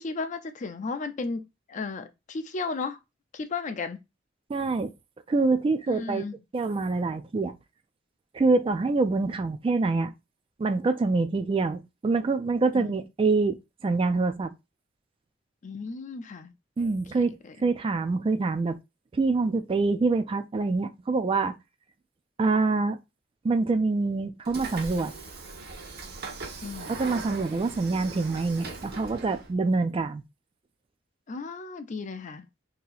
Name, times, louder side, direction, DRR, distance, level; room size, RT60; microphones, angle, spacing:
voice 1, 0.0-1.4 1.7-3.0 3.3-4.0 5.9-6.3 12.7-12.9 15.6-16.5 17.1-17.7 26.6-27.1 31.3-32.5, left 4 dB, 40° left, 0.4 m, -34 dB
voice 2, 4.5-4.9 5.3-6.2 6.5-7.5 8.3-10.1 10.6-13.6 13.8-14.5 16.8-17.4 17.6-18.8 19.1-21.6 22.4-23.0 23.4-25.1 26.9-30.2, right 3 dB, 30° right, 0.3 m, -25 dB
Train / Sliding door, 24.4-29.5, right 3 dB, 55° right, 0.8 m, -40 dB
2.8 x 2.7 x 3.9 m
head